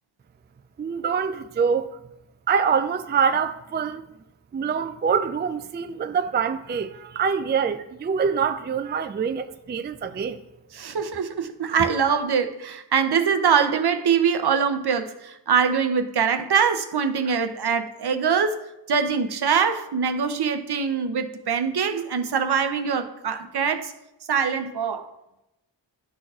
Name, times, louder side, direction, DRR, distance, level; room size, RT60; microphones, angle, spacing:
voice 1, 0.8-2.0 2.5-4.0 4.5-10.4, right 6 dB, 25° right, 0.3 m, -25 dB
voice 2, 10.7-18.6 18.9-23.9 24.3-25.1, right 6 dB, 60° right, 0.6 m, -23 dB
11.5 x 3.9 x 2.4 m
cardioid pair, 45°, 45 cm